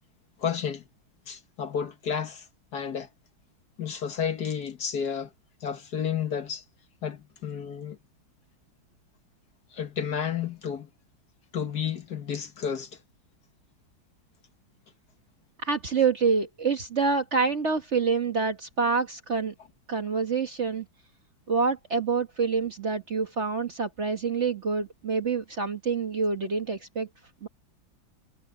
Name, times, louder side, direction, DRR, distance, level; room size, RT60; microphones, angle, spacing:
voice 1, 0.4-0.8 1.3-2.5 2.7-3.1 3.8-5.3 5.6-6.6 7.0-8.0 9.7-10.9 11.5-13.0, left 7 dB, 55° left, 1.8 m, -31 dB
voice 2, 15.6-19.5 19.9-20.9 21.5-27.1 27.4-27.5, right 5 dB, 40° right, 1.4 m, -27 dB
omnidirectional pair, 2.2 m